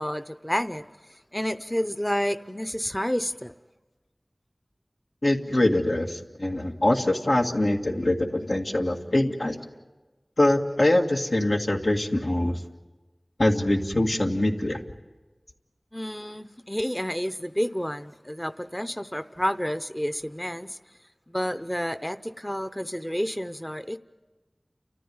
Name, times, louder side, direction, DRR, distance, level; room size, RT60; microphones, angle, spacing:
voice 1, 0.0-3.5 15.9-20.8 21.3-24.0, equal, 15° left, 11 dB, 0.7 m, -30 dB
voice 2, 5.2-9.6 10.4-12.6 13.4-14.8, left 1 dB, 80° left, 1 dB, 1.9 m, -23 dB
30.0 x 14.0 x 9.5 m, 1.2 s
wide cardioid pair, 45°, 0 cm